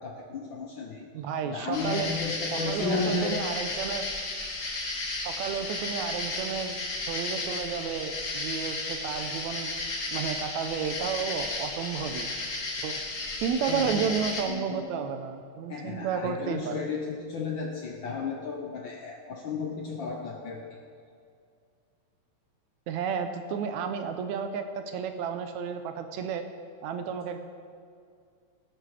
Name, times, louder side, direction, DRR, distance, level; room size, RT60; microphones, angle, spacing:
voice 1, 0.0-1.1 1.5-3.4 13.7-14.1 14.5-14.9 15.7-20.7, left 4 dB, 70° left, 2 dB, 1.1 m, -33 dB
voice 2, 1.1-2.1 2.5-4.1 5.2-6.8 7.1-9.7 10.1-12.3 12.8-13.0 13.4-16.8 22.9-26.4 26.8-27.4, right 7 dB, 75° right, 7 dB, 2.1 m, -32 dB
sound 1, 1.7-14.4, left 2 dB, 40° left, 2.3 m, -34 dB
18.0 x 9.5 x 4.8 m, 2.3 s
omnidirectional pair, 3.4 m